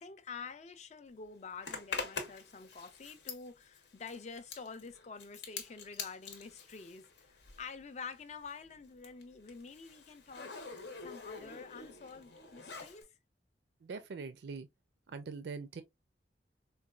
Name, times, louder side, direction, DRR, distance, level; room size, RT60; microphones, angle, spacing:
voice 1, 0.0-10.7 11.0-13.1, left 5 dB, 40° left, 0.4 m, -48 dB
Zipper (clothing), 1.6-7.8 8.1-13.0, left 4 dB, 80° left, 0.8 m, -45 dB
voice 2, 13.8-14.7 15.1-15.8, right 4 dB, 70° right, 0.4 m, -42 dB
4.0 x 2.2 x 2.3 m
head